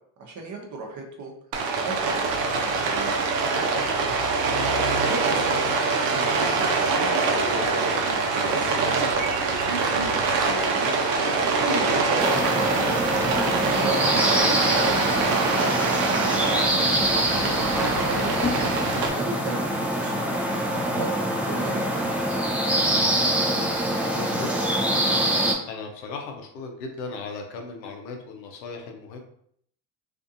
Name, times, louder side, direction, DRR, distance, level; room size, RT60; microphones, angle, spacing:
voice 1, 0.2-1.3 1.8-3.9 4.8-5.8 6.0-7.8 8.3-9.0 9.9-11.0 11.5-12.4 13.3-14.4 14.8-16.5 16.8-17.4 17.7-18.3 19.2-21.1 21.5-22.3, right 3 dB, 35° right, 1 dB, 0.8 m, -36 dB
Rain, 1.5-19.1, right 4 dB, 70° right, 0.7 m, -24 dB
sound 1, 12.2-25.5, right 1 dB, 5° right, 0.3 m, -25 dB
sound 2, 17.8-18.7, left 3 dB, 15° left, 0.7 m, -36 dB
voice 2, 23.8-24.7 25.7-29.2, left 4 dB, 90° left, 3 dB, 0.7 m, -37 dB
2.6 x 2.5 x 2.5 m, 0.67 s
hypercardioid pair, 75°, 50 cm